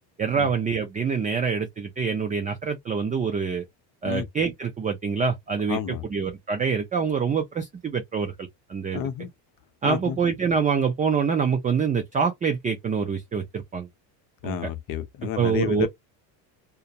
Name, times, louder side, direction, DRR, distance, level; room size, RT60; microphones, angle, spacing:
voice 1, 0.2-3.6 4.0-5.8 6.1-8.3 8.7-9.0 9.8-13.9 14.4-14.5 15.4-15.9, right 6 dB, 20° right, 0.3 m, -25 dB
voice 2, 5.7-6.1 8.9-9.3 9.8-10.2 14.4-15.9, left 10 dB, 45° left, 0.6 m, -30 dB
2.3 x 2.1 x 2.6 m
supercardioid pair, 100°, 49 cm